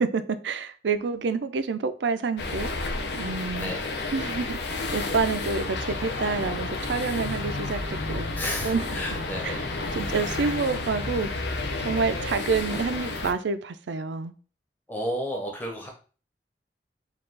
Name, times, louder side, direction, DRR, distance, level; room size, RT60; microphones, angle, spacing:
voice 1, 0.0-2.7 3.1-3.7 4.1-7.8 8.1-8.3 8.6-8.8 9.4-9.6 9.9-11.3 11.8-14.3, right 4 dB, 85° right, 12 dB, 0.4 m, -28 dB
sound 1, 2.4-13.3, left 3 dB, 75° left, 0.6 m, -31 dB
voice 2, 3.6-4.0 8.3-9.7 14.9-15.9, equal, 10° left, 0 dB, 0.8 m, -32 dB
4.6 x 2.4 x 3.8 m, 0.38 s
head